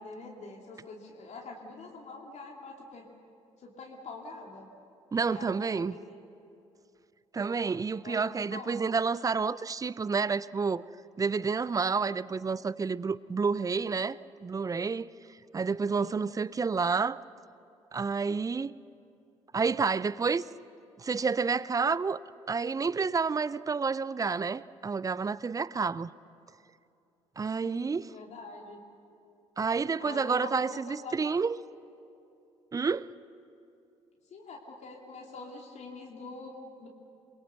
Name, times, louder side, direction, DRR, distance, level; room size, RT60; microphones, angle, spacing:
voice 1, 0.0-3.1 3.6-4.7 5.2-6.2 8.0-8.7 15.9-16.3 27.5-28.8 30.0-31.4 34.3-36.9, left 3 dB, 45° left, 2.8 m, -45 dB
voice 2, 5.1-6.0 7.3-10.8 11.2-15.1 15.5-17.2 17.9-18.7 19.5-20.4 21.0-22.2 22.5-26.1 27.4-28.1 29.6-31.6 32.7-33.1, right 5 dB, 20° right, 0.6 m, -29 dB
28.0 x 23.0 x 6.8 m
figure-of-eight pair, 50°, 16 cm